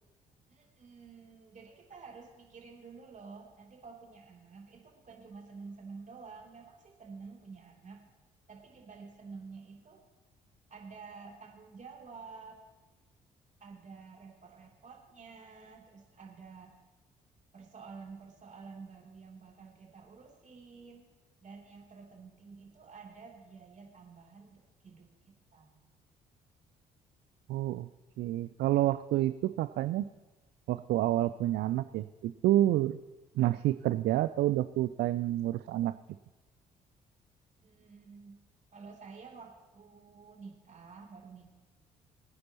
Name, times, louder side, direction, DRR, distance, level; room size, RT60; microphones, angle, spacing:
voice 1, 0.5-8.0 8.5-10.0 10.7-12.6 13.6-16.7 17.5-21.1 21.4-25.9 37.6-38.4 38.7-41.6, right 4 dB, 40° right, -1 dB, 3.1 m, -50 dB
voice 2, 27.5-27.9 28.2-30.0 30.7-33.0 33.4-35.9, right 14 dB, 60° right, 13 dB, 0.4 m, -28 dB
22.0 x 9.5 x 3.0 m, 1.2 s
hypercardioid pair, 45°, 20 cm